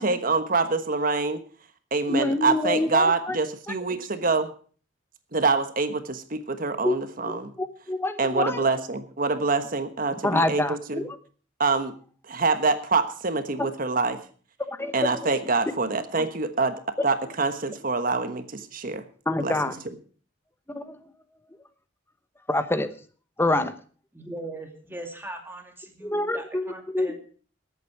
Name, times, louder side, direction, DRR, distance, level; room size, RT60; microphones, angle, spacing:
voice 1, 0.0-1.4 1.9-4.5 5.3-7.5 8.2-11.0 11.6-11.9 12.3-14.2 14.9-16.8 17.0-19.0 19.4-19.5, right 3 dB, 45° right, 9 dB, 1.3 m, -25 dB
voice 2, 2.1-3.4 6.8-6.9 7.6-8.6 10.2-11.2 13.6-13.7 14.7-15.3 19.3-19.8 20.7-21.0 22.5-22.9 23.4-23.7 26.0-27.2, left 2 dB, 10° left, 11 dB, 0.9 m, -26 dB
voice 3, 24.1-27.2, right 1 dB, 10° right, 4 dB, 2.3 m, -40 dB
19.5 x 8.4 x 4.7 m, 0.42 s
head